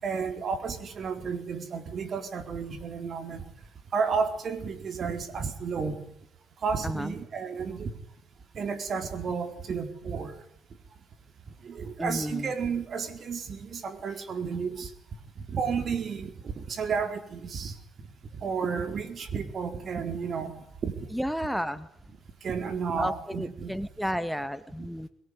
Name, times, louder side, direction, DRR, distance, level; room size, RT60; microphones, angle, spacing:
voice 1, 0.0-3.4 3.9-6.0 6.6-7.9 8.5-10.3 11.6-14.9 15.4-17.7 18.4-20.9 22.4-23.8 24.0-24.1, right 5 dB, 55° right, 9 dB, 4.3 m, -32 dB
voice 2, 12.0-12.5 21.1-21.9 23.0-25.1, equal, ahead, 14 dB, 1.3 m, -32 dB
23.0 x 22.0 x 9.9 m, 0.72 s
cardioid pair, 90°, 0 cm